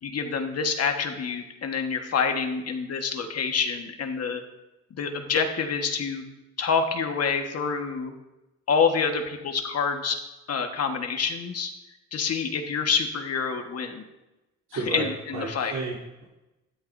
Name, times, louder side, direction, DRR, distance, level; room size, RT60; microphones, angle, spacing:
voice 1, 0.0-4.4 5.0-6.2 6.6-8.1 8.7-10.2 10.5-11.7 12.1-14.0 14.9-15.7, left 5 dB, 55° left, 5 dB, 1.5 m, -27 dB
voice 2, 14.7-15.1 15.3-16.2, right 3 dB, 60° right, -7 dB, 3.2 m, -32 dB
13.0 x 12.5 x 2.7 m, 1.0 s
cardioid pair, 90°, 30 cm